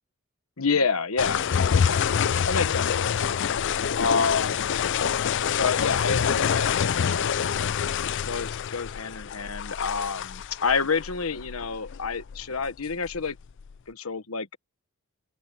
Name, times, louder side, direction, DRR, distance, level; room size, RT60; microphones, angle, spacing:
voice 1, 0.6-2.0 2.4-3.4 4.0-4.7 5.6-7.8 8.3-13.4 13.9-14.6, left 5 dB, 75° left, 1.3 m, -29 dB
sound 1, 1.2-13.7, left 7 dB, 55° left, 0.4 m, -26 dB
open air
head